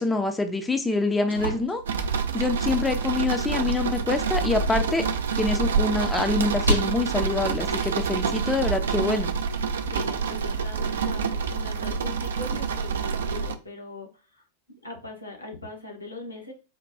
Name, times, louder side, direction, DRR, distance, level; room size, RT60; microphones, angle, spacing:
voice 1, 0.0-1.8 2.3-5.0 5.4-9.3, left 3 dB, 10° left, 6 dB, 0.4 m, -26 dB
sound 1, 0.9-8.8, right 2 dB, 85° right, 0.8 m, -34 dB
sound 2, 1.9-13.6, right 5 dB, 65° right, 0.3 m, -27 dB
voice 2, 9.8-14.4 14.8-16.5, left 2 dB, 85° left, 0 dB, 0.9 m, -40 dB
4.5 x 2.2 x 2.6 m, 0.32 s
figure-of-eight pair, 90°, 0 cm